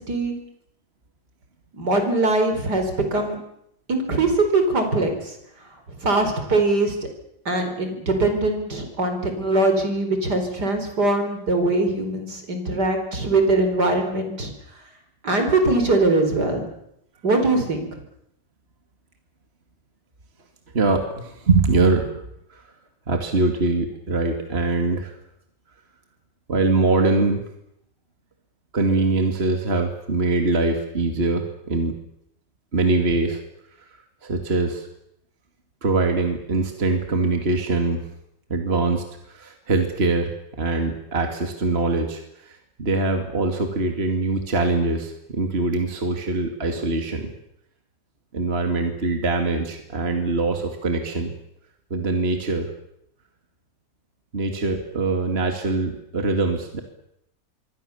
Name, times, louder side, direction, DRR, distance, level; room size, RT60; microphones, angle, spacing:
voice 1, 1.7-3.4 3.9-5.3 6.0-6.9 7.4-14.5 15.2-16.6 17.2-17.9, right 2 dB, 60° right, 6 dB, 4.9 m, -22 dB
voice 2, 20.7-22.2 23.1-25.1 26.5-27.4 28.7-31.9 32.7-33.4 34.2-34.9 35.8-38.0 38.5-39.0 39.3-42.2 42.5-47.3 48.3-51.3 51.9-52.7 54.3-56.8, right 3 dB, 35° right, 5 dB, 2.5 m, -23 dB
26.5 x 23.5 x 7.1 m, 0.78 s
omnidirectional pair, 2.0 m